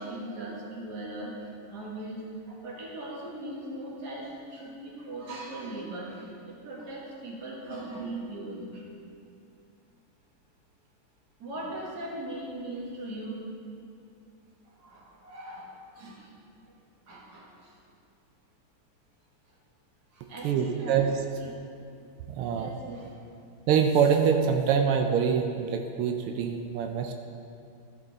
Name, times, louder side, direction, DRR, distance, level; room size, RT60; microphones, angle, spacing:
voice 1, 0.0-8.9 11.4-13.4 14.8-15.7 16.0-16.3 17.1-17.7 20.1-21.0 21.4-21.7 22.5-23.1, right 1 dB, 50° right, -4 dB, 2.0 m, -39 dB
voice 2, 20.4-21.1 22.3-22.7 23.7-27.1, right 7 dB, 90° right, 5 dB, 1.5 m, -25 dB
13.5 x 5.3 x 3.9 m, 2.5 s
omnidirectional pair, 2.4 m